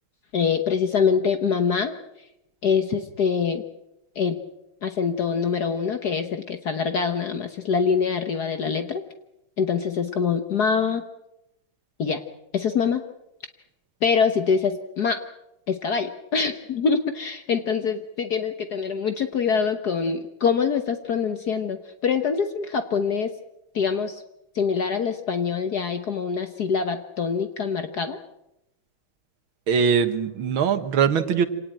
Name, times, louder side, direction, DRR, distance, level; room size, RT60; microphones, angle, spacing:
voice 1, 0.3-1.9 2.6-3.6 4.1-4.4 4.8-9.0 9.6-11.0 12.0-12.2 12.5-13.0 14.0-15.2 15.7-23.3 23.7-24.2 24.5-28.2, left 6 dB, 55° left, 8 dB, 1.6 m, -24 dB
voice 2, 29.7-31.5, right 7 dB, 85° right, 11 dB, 2.2 m, -21 dB
26.5 x 18.5 x 8.9 m, 0.87 s
omnidirectional pair, 2.2 m